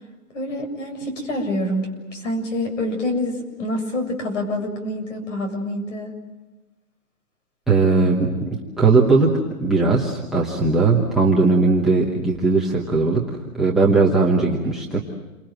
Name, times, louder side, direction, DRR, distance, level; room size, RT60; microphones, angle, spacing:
voice 1, 0.3-6.2, left 1 dB, 55° left, 5 dB, 7.5 m, -26 dB
voice 2, 7.7-13.2 13.5-15.0, right 3 dB, ahead, -3 dB, 1.0 m, -18 dB
29.5 x 25.0 x 7.8 m, 1.1 s
hypercardioid pair, 170°, 45 cm